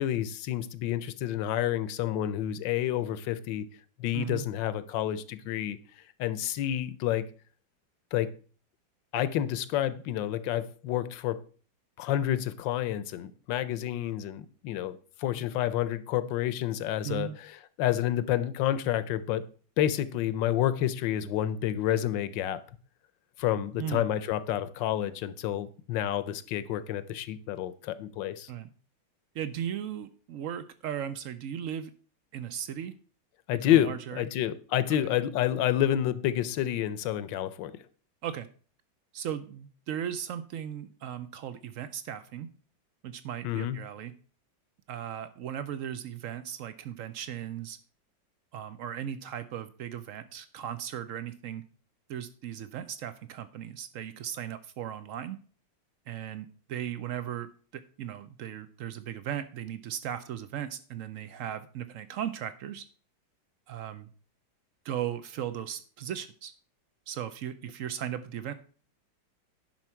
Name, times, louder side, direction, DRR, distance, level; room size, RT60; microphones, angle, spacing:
voice 1, 0.0-3.6 4.0-5.8 6.2-7.2 8.1-8.3 9.1-11.4 12.0-19.4 19.8-22.6 23.4-28.5 33.5-37.7 43.4-43.8, left 12 dB, 75° left, 15 dB, 1.3 m, -29 dB
voice 2, 4.1-4.4 17.0-17.3 23.8-24.0 28.5-28.7 29.3-31.9 32.3-32.9 33.5-34.3 38.2-38.5 39.1-42.5 43.0-44.1 44.9-47.8 48.5-51.6 52.1-55.4 56.1-62.8 63.7-64.1 64.8-66.5 67.1-68.5, right 10 dB, 80° right, 13 dB, 0.7 m, -37 dB
10.5 x 5.7 x 4.4 m, 0.41 s
omnidirectional pair, 2.0 m